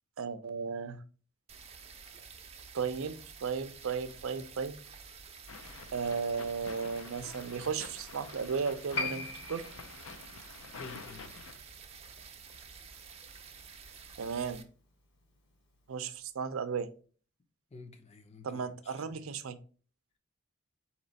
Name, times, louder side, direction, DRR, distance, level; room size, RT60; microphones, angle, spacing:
voice 1, 0.2-1.0 2.7-4.8 5.9-9.6 14.2-14.6 15.9-16.9 18.4-19.6, right 5 dB, 85° right, 0.5 m, -35 dB
sound 1, 1.5-14.6, right 6 dB, 30° right, 0.5 m, -50 dB
sound 2, 5.5-11.6, left 5 dB, 80° left, 0.5 m, -49 dB
Piano, 8.9-15.9 16.2-16.3, left 3 dB, 55° left, 1.0 m, -43 dB
voice 2, 10.7-11.4 17.7-19.3, left 4 dB, 30° left, 0.5 m, -52 dB
4.2 x 2.9 x 4.0 m
head